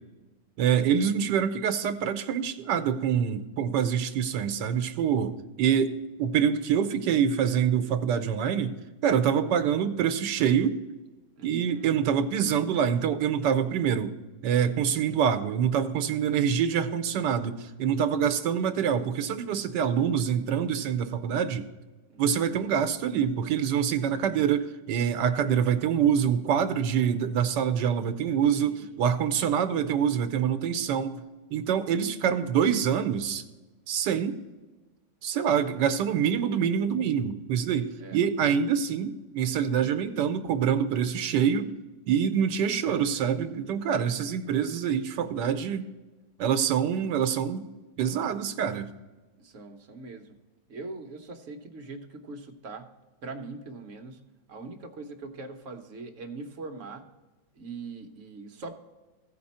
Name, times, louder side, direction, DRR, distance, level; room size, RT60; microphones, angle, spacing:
voice 1, 0.6-8.8 9.0-10.8 11.4-14.1 14.4-21.7 22.2-31.2 31.5-33.4 33.9-34.4 35.2-41.7 42.1-45.9 46.4-47.7 48.0-48.9, right 8 dB, 75° right, 9 dB, 1.4 m, -25 dB
voice 2, 11.4-11.9 17.8-18.3 22.1-22.2 24.1-24.3 28.6-29.0 38.0-38.2 49.4-50.3 50.7-52.9 53.2-54.2 54.5-57.1 57.6-58.7, right 3 dB, 50° right, 4 dB, 1.1 m, -42 dB
15.0 x 5.2 x 4.2 m, 1.2 s
omnidirectional pair, 1.9 m